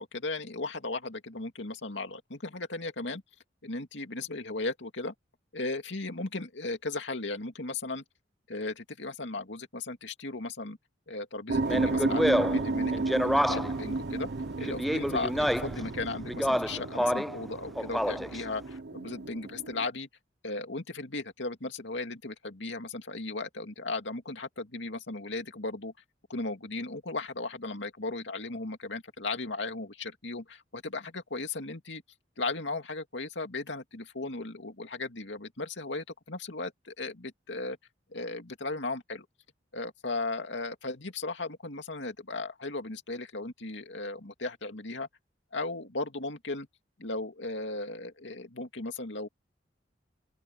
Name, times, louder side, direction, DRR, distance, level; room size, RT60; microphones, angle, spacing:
voice 1, 0.0-3.2 3.6-5.1 5.5-8.0 8.5-10.8 11.1-12.9 13.2-14.3 14.6-20.1 20.4-25.9 26.3-32.0 32.4-37.8 38.1-39.3 39.7-45.1 45.5-46.7 47.0-49.3, left 3 dB, 75° left, 2.6 m, -36 dB
sound 1, 11.5-19.9, right 3 dB, 60° right, 0.7 m, -33 dB
Speech, 11.7-13.8 14.6-15.8 16.3-17.4 17.8-18.4, equal, ahead, 0.5 m, -28 dB
open air
head